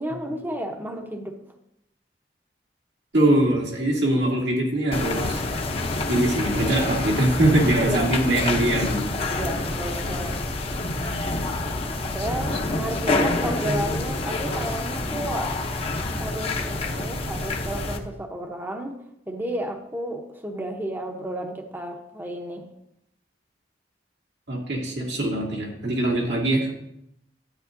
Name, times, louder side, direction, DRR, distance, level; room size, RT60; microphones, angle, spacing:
voice 1, 0.0-1.4 7.8-8.1 9.4-10.4 12.1-15.5 16.1-19.0 19.3-22.6, right 1 dB, 10° right, 3 dB, 0.8 m, -32 dB
voice 2, 3.1-5.4 6.1-9.1 10.0-10.2 24.5-26.7, right 1 dB, 80° right, -3 dB, 2.5 m, -22 dB
sound 1, 4.9-18.0, left 2 dB, 35° left, 0.8 m, -27 dB
12.0 x 8.8 x 2.6 m, 0.78 s
head